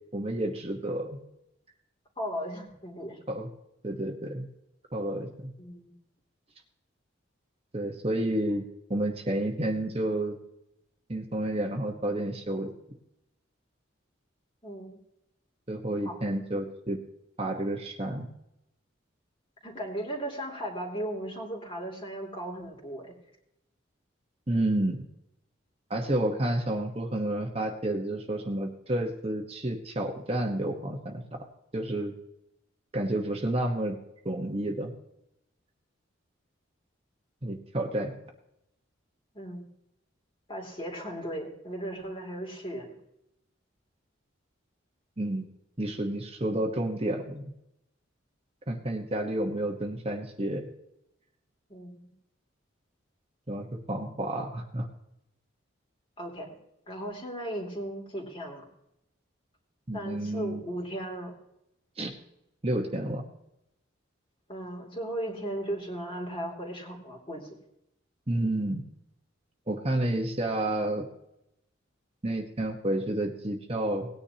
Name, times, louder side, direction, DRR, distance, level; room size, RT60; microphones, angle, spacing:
voice 1, 0.1-1.2 3.3-3.5 3.8-4.4 4.9-5.5 7.7-8.6 8.9-10.4 11.1-12.7 15.7-17.0 17.4-18.3 24.5-25.0 25.9-31.4 31.7-32.1 32.9-34.0 34.2-34.9 37.4-38.1 45.2-45.5 45.8-47.5 48.7-50.6 53.5-54.9 59.9-60.6 62.0-62.1 62.6-63.2 68.3-68.8 69.7-71.0 72.2-74.1, right 1 dB, 30° right, 2 dB, 1.2 m, -30 dB
voice 2, 2.2-3.2 5.6-5.9 14.6-15.0 16.0-16.2 19.6-23.1 39.3-39.7 40.5-42.9 51.7-52.1 56.2-56.5 56.9-58.7 59.9-61.3 64.5-67.5, right 1 dB, 25° left, -1 dB, 2.8 m, -36 dB
18.5 x 9.9 x 2.9 m, 0.83 s
head